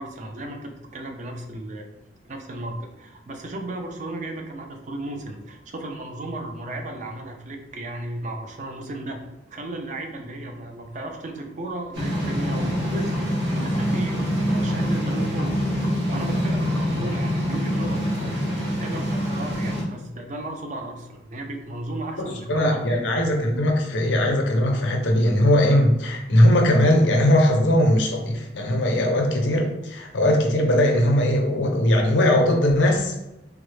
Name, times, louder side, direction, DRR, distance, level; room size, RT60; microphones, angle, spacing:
voice 1, 0.0-1.9 2.2-9.2 9.5-15.6 16.1-18.1 18.5-22.8, right 1 dB, 40° right, 3 dB, 0.4 m, -34 dB
sound 1, 11.9-19.8, equal, 75° right, 1.3 m, -25 dB
voice 2, 22.2-33.2, left 1 dB, 75° left, 2 dB, 0.6 m, -20 dB
3.7 x 2.0 x 3.1 m, 0.95 s
head